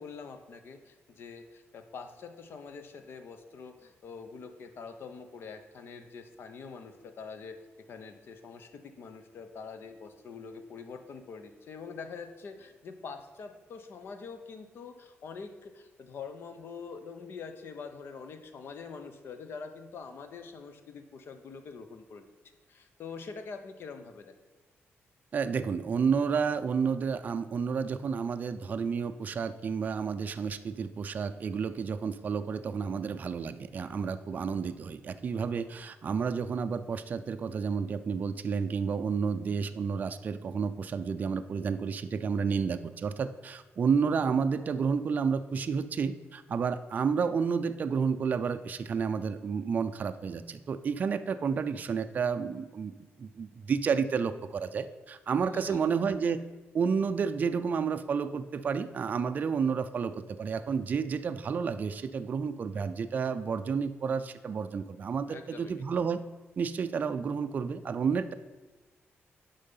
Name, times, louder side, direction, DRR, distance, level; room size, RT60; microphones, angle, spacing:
voice 1, 0.0-22.3 22.7-24.3 55.5-55.9 65.3-65.7, left 5 dB, 55° left, 8 dB, 0.9 m, -45 dB
voice 2, 25.3-56.4 56.7-66.2 66.6-68.3, right 6 dB, 40° right, 9 dB, 0.4 m, -31 dB
10.5 x 5.5 x 5.5 m, 1.2 s
wide cardioid pair, 165°, 5 cm